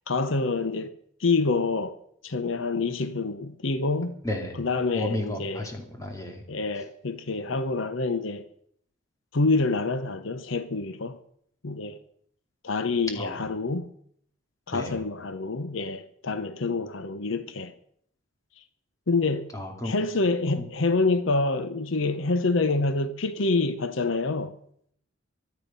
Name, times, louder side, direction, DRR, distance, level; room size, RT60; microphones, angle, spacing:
voice 1, 0.1-0.9 1.2-2.0 2.2-4.2 4.6-5.7 6.5-8.5 9.3-11.2 11.6-12.0 12.6-13.9 14.7-17.7 19.1-19.5 19.8-24.6, left 3 dB, 75° left, 0.8 m, -27 dB
voice 2, 4.9-6.4 13.2-13.4 14.7-15.0 19.5-19.9 20.6-20.7, left 1 dB, 15° left, 2.7 m, -33 dB
24.0 x 8.7 x 5.4 m
head